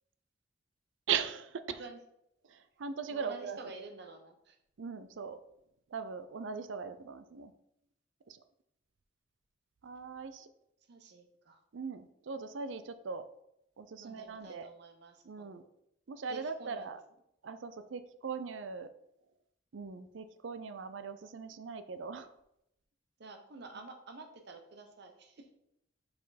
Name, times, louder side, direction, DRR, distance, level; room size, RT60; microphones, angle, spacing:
voice 1, 1.1-1.8 2.5-3.6 4.8-5.4 5.9-7.5 8.3-8.4 9.8-10.5 11.7-13.2 13.8-14.7 15.2-15.6 16.1-17.0 17.4-18.9 19.7-22.3, right 6 dB, 75° right, 11 dB, 0.5 m, -39 dB
voice 2, 3.1-4.6 10.9-11.6 14.0-15.6 16.3-17.0 23.2-25.5, right 3 dB, 60° right, 5 dB, 0.9 m, -50 dB
5.1 x 4.4 x 4.1 m, 0.80 s
head